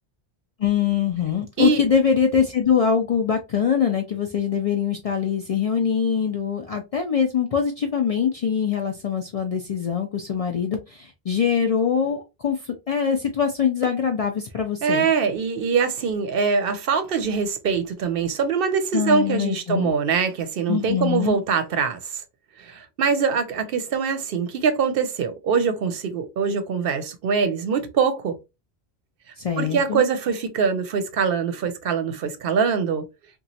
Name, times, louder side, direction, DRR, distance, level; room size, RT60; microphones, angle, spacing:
voice 1, 0.6-15.1 18.9-19.9 20.7-21.4 29.4-30.0, left 7 dB, 55° left, 0.4 m, -23 dB
voice 2, 14.8-22.2 22.6-28.4 29.6-33.1, right 6 dB, 65° right, 0.7 m, -23 dB
2.9 x 2.3 x 2.7 m
omnidirectional pair, 1.1 m